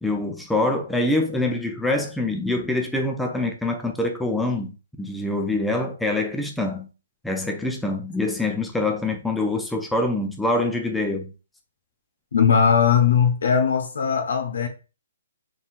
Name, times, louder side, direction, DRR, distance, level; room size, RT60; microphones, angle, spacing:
voice 1, 0.0-6.9 7.2-11.3, left 2 dB, 5° left, 0.6 m, -25 dB
voice 2, 12.3-14.7, left 7 dB, 70° left, 1.0 m, -19 dB
5.4 x 3.8 x 2.5 m
hypercardioid pair, 145°, 0 cm